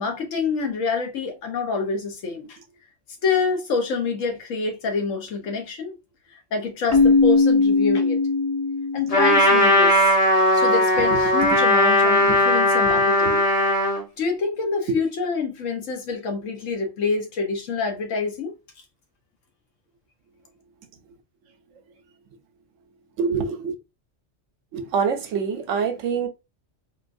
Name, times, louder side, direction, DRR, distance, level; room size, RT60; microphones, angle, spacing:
voice 1, 0.0-2.6 3.2-6.0 6.5-8.2 8.9-10.1 10.5-13.4 14.2-18.5, left 4 dB, 80° left, 1.3 m, -26 dB
Keyboard (musical), 6.9-9.6, left 3 dB, 20° left, 0.5 m, -19 dB
Trumpet, 9.1-14.0, left 1 dB, 50° left, 1.4 m, -18 dB
voice 2, 23.2-23.7 24.7-26.3, right 5 dB, 75° right, 1.0 m, -25 dB
3.6 x 2.4 x 2.5 m
omnidirectional pair, 1.3 m